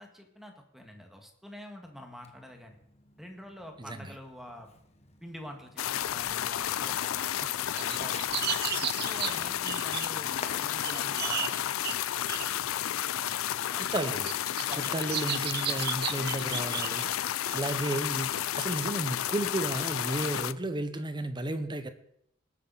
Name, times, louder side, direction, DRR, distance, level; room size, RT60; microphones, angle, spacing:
voice 1, 0.0-2.8 3.2-4.7 5.2-8.5 9.0-11.7 13.1-13.3 13.7-14.1 14.7-15.0, equal, ahead, 3 dB, 1.7 m, -46 dB
Fireworks, 2.2-12.9, left 5 dB, 35° left, 1.1 m, -52 dB
voice 2, 3.8-4.1 13.8-14.3 14.9-21.9, right 1 dB, 20° right, 10 dB, 0.9 m, -33 dB
sound 1, 5.8-20.5, left 11 dB, 80° left, 0.4 m, -32 dB
sound 2, 7.8-10.4 10.8-12.5 13.6-13.7 14.3-17.2, right 10 dB, 50° right, 0.6 m, -35 dB
19.5 x 8.4 x 4.0 m, 0.73 s
head